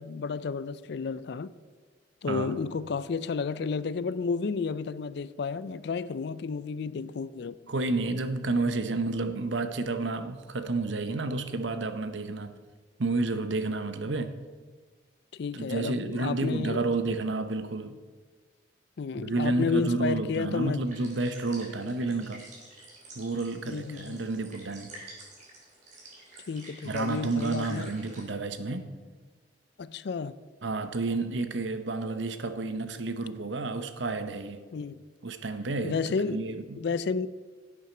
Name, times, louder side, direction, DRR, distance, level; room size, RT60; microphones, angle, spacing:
voice 1, 0.0-1.5 2.2-7.6 14.0-14.2 15.3-16.9 19.0-20.9 23.7-24.2 26.5-27.9 29.8-30.3 34.7-35.0 35.8-37.3, left 5 dB, 60° left, 0.4 m, -32 dB
voice 2, 7.7-12.6 13.0-14.4 15.5-18.0 19.2-22.4 23.2-24.9 26.8-28.9 30.6-34.6 35.2-36.0 36.3-36.8, right 3 dB, 75° right, 0.8 m, -30 dB
sound 1, 20.8-28.2, right 2 dB, 40° right, 3.6 m, -49 dB
11.0 x 8.5 x 4.4 m
head